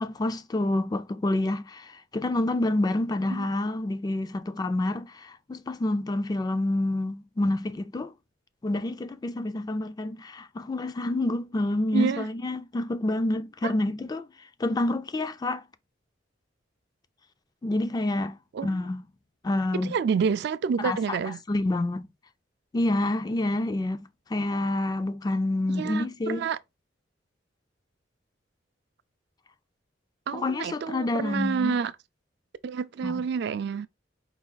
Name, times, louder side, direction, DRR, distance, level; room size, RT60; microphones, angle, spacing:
voice 1, 0.0-8.1 8.6-14.3 14.6-15.6 17.6-19.0 19.4-20.0 20.8-21.2 21.5-22.1 22.7-26.5 30.3-31.8 33.0-33.2, left 2 dB, 20° left, 0.3 m, -28 dB
voice 2, 11.9-12.3 13.6-13.7 18.5-18.7 19.8-21.4 25.7-26.6 30.3-31.9 32.6-33.9, right 6 dB, 60° right, 0.3 m, -28 dB
4.7 x 2.3 x 4.0 m
head